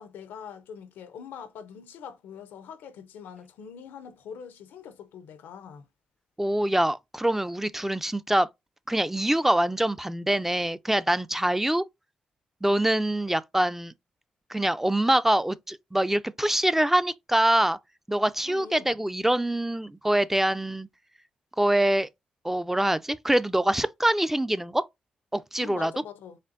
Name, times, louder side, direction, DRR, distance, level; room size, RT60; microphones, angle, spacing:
voice 1, 0.0-5.9 18.4-19.0 25.6-26.4, left 7 dB, 85° left, 0.6 m, -43 dB
voice 2, 6.4-8.5 8.9-11.8 12.6-13.9 14.5-17.8 18.1-20.9 21.6-22.1 22.4-24.8 25.3-25.9, right 1 dB, 10° right, 0.3 m, -24 dB
4.2 x 3.3 x 2.5 m
cardioid pair, 65°, 3 cm